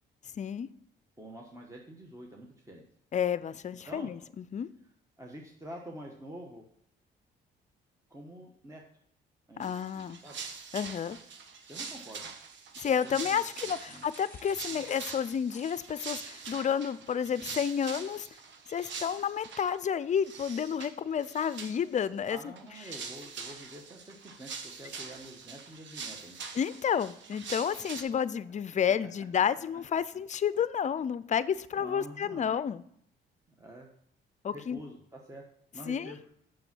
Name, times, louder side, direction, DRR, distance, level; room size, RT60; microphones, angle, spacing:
voice 1, 0.4-0.7 3.1-4.7 9.6-10.2 10.7-11.2 12.8-18.3 18.7-22.4 26.5-32.8 34.4-34.8 35.9-36.1, left 8 dB, 35° left, 17 dB, 0.5 m, -30 dB
voice 2, 1.2-2.9 3.9-4.1 5.2-6.6 8.1-8.8 9.5-10.4 11.7-12.3 13.0-14.0 14.7-14.9 22.3-26.4 31.8-32.6 33.6-33.9 34.5-35.4 35.7-36.2, right 1 dB, 15° right, 0 dB, 1.2 m, -47 dB
sound 1, 9.6-19.7 20.2-20.9 21.2-22.0 22.3-28.0, right 5 dB, 65° right, 1.2 m, -44 dB
sound 2, 12.3-16.4, left 2 dB, 10° left, 2.4 m, -56 dB
6.9 x 6.3 x 6.0 m, 0.69 s
cardioid pair, 90°, 20 cm